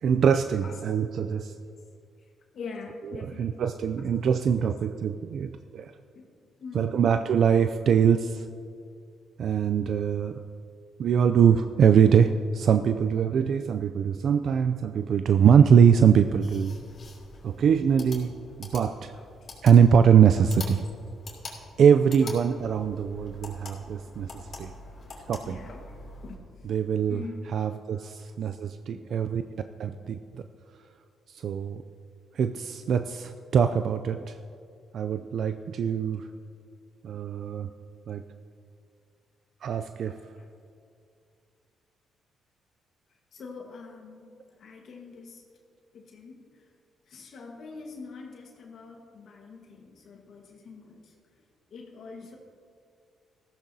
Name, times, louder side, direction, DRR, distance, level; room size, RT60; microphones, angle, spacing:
voice 1, 0.0-1.5 3.4-5.9 6.7-8.5 9.4-10.4 11.0-16.8 17.4-18.3 18.6-19.1 19.6-20.8 21.8-24.3 24.6-24.7 25.3-25.6 26.6-27.2 27.5-30.4 31.3-31.8 32.3-34.4 34.9-36.3 37.0-37.7 38.1-38.2 39.6-40.2, right 7 dB, 65° right, 9 dB, 0.4 m, -22 dB
voice 2, 2.5-3.7 4.6-4.7 6.1-6.3 6.6-7.5 7.8-7.9 19.1-19.2 22.2-22.3 25.5-25.9 26.2-26.8 27.1-27.6 27.9-28.1 28.9-29.0 40.0-40.5 43.3-44.3 44.6-45.4 45.9-46.7 47.1-51.1 51.7-52.4, left 4 dB, 65° left, 1 dB, 1.5 m, -44 dB
sound 1, 16.0-26.4, left 3 dB, 45° left, 2.8 m, -45 dB
14.5 x 13.5 x 2.8 m, 2.3 s
cardioid pair, 90°, 0 cm